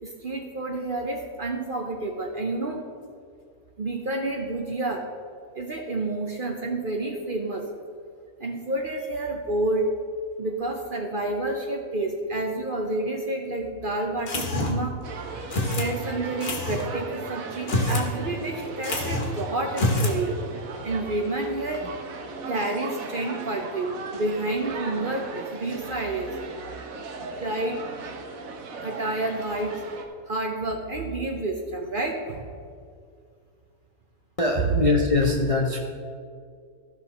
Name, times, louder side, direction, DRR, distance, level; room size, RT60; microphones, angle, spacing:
voice 1, 0.0-2.8 3.8-5.0 5.6-7.7 8.4-9.9 10.4-15.0 15.7-20.4 20.7-21.9 22.5-26.4 27.4-27.8 28.8-29.8 30.3-32.5 34.6-34.7, right 2 dB, 45° right, 2 dB, 0.8 m, -29 dB
sound 1, 14.3-14.9 15.5-15.9 16.4-16.9 17.6-18.1 18.4-18.5 18.8-19.4 19.7-20.2, left 2 dB, 85° left, 1.8 m, -26 dB
sound 2, 15.0-30.0, right 4 dB, 70° right, 1.4 m, -37 dB
voice 2, 34.4-35.8, left 3 dB, 35° left, 0 dB, 0.6 m, -22 dB
14.5 x 5.7 x 4.1 m, 2.2 s
omnidirectional pair, 1.5 m